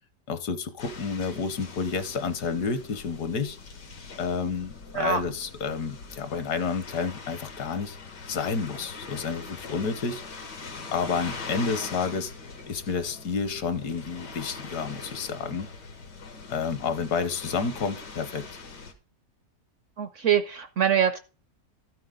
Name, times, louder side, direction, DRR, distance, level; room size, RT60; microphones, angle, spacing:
voice 1, 0.3-3.6 4.2-8.0 8.3-10.2 10.9-12.3 12.7-15.7 16.5-18.4, left 5 dB, 70° left, 11 dB, 1.5 m, -30 dB
sound 1, 0.8-18.9, left 4 dB, 85° left, 2.3 m, -42 dB
voice 2, 20.0-21.2, right 8 dB, 65° right, 11 dB, 0.8 m, -24 dB
13.0 x 7.7 x 3.8 m, 0.35 s
omnidirectional pair, 1.8 m